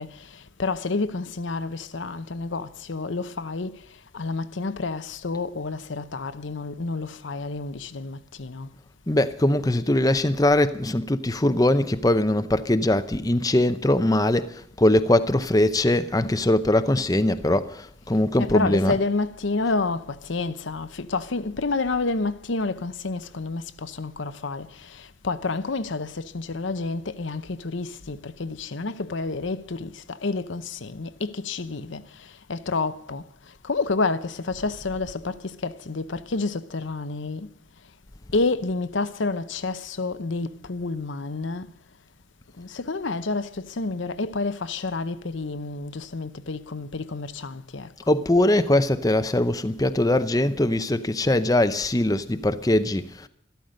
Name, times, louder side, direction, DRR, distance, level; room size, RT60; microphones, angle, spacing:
voice 1, 0.0-3.9 4.1-8.7 18.4-37.5 38.3-41.7 42.6-47.9, left 3 dB, 75° left, 0.8 m, -29 dB
voice 2, 9.1-19.0 48.1-53.3, left 1 dB, 20° left, 0.6 m, -21 dB
13.5 x 13.0 x 6.4 m
head